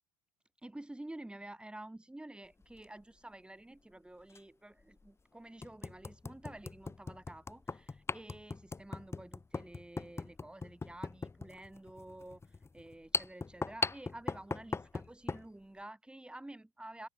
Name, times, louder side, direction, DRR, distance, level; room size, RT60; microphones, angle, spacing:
voice 1, 0.6-17.1, right 1 dB, 10° right, 5.5 m, -50 dB
sound 1, 2.6-2.8 4.3-4.4 5.0-5.1 5.6-15.5, left 4 dB, 20° left, 5.0 m, -39 dB
open air
hypercardioid pair, 75°, 13 cm